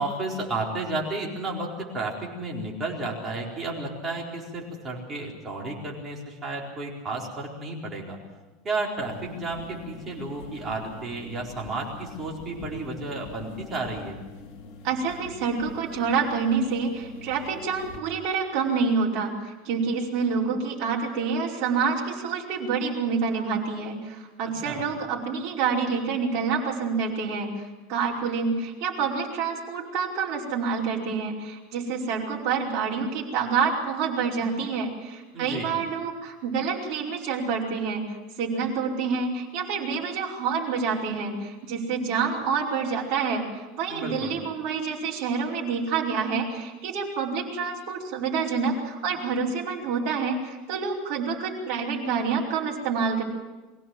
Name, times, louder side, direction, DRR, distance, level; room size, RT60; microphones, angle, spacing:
voice 1, 0.0-8.2 8.6-14.2 24.6-24.8 35.3-35.7 43.9-44.3, right 2 dB, 20° right, -2 dB, 4.3 m, -32 dB
sound 1, 9.0-18.0, left 3 dB, 45° left, 3.8 m, -44 dB
voice 2, 14.8-53.2, right 5 dB, 50° right, -3 dB, 5.1 m, -27 dB
23.0 x 16.5 x 7.8 m, 1.2 s
supercardioid pair, 160°, 0 cm